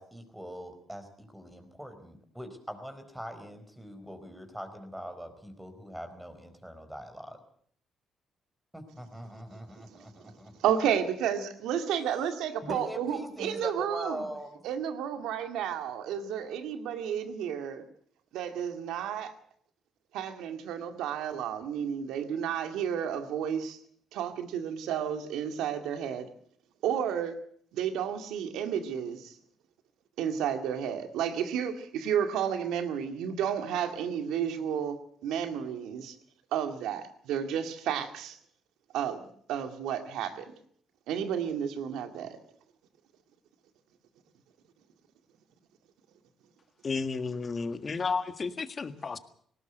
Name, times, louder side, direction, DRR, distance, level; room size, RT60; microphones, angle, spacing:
voice 1, 0.0-7.4 8.7-10.5 12.6-14.6, equal, 5° right, 7 dB, 4.4 m, -42 dB
voice 2, 10.6-14.2 14.6-17.8 18.3-19.3 20.1-23.8 24.1-26.3 26.8-27.4 27.7-29.3 30.2-35.0 35.2-36.2 36.5-38.4 38.9-40.5 41.1-42.4, right 8 dB, 90° right, 8 dB, 2.1 m, -32 dB
voice 3, 46.8-49.2, left 4 dB, 40° left, 10 dB, 1.7 m, -32 dB
19.0 x 18.0 x 8.0 m, 0.62 s
cardioid pair, 90°, 0 cm